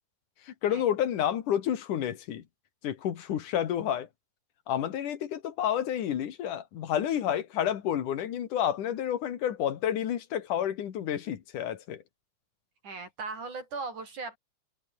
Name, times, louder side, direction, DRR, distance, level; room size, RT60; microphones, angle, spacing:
voice 1, 0.5-2.4 2.8-4.1 4.7-12.0, left 10 dB, 85° left, 3.4 m, -30 dB
voice 2, 12.8-14.4, right 4 dB, 75° right, 8.2 m, -38 dB
omnidirectional pair, 3.5 m